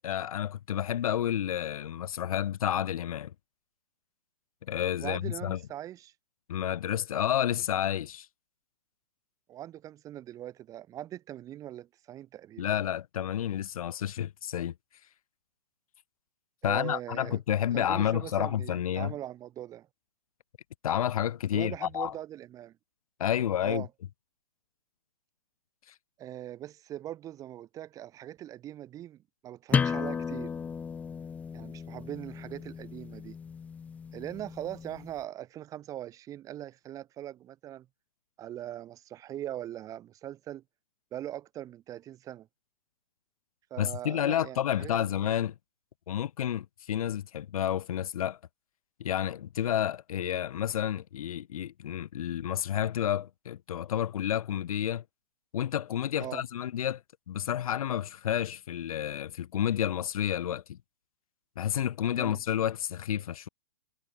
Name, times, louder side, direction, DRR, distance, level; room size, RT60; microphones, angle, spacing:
voice 1, 0.0-3.3 4.7-5.6 6.5-8.3 12.6-14.7 16.6-19.1 20.8-22.1 23.2-23.8 43.8-45.5 46.1-48.4 49.0-55.0 55.5-57.0 57.3-60.8 61.6-63.5, left 10 dB, 60° left, 2.0 m, -30 dB
voice 2, 5.0-6.1 9.5-12.7 16.6-17.4 17.7-19.9 21.5-22.8 23.6-23.9 26.2-30.5 31.5-33.4 34.1-37.9 38.4-40.6 41.1-42.5 43.7-45.3 56.2-56.4 62.1-62.4, right 12 dB, 15° right, 1.9 m, -41 dB
sound 1, 29.7-35.1, left 6 dB, 5° left, 0.7 m, -34 dB
hypercardioid pair, 160°, 20 cm